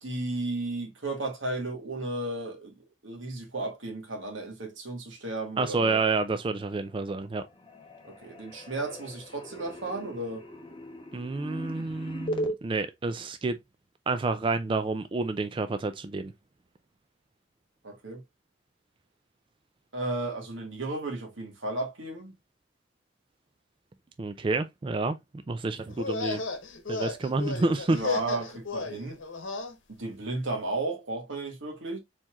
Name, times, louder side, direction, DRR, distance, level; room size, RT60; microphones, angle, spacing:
voice 1, 0.0-2.8 3.0-6.0 8.0-10.5 17.8-18.2 19.9-22.3 27.9-29.2 29.9-32.0, right 2 dB, 85° right, 1.7 m, -34 dB
voice 2, 5.6-7.5 11.1-13.6 14.1-16.3 24.2-25.2 25.5-26.4 26.9-28.0, right 3 dB, 25° right, 0.3 m, -29 dB
sound 1, 6.6-7.1 7.4-12.5, equal, 25° left, 1.0 m, -38 dB
sound 2, 25.9-29.7, left 4 dB, 85° left, 1.0 m, -34 dB
4.5 x 4.2 x 2.3 m
head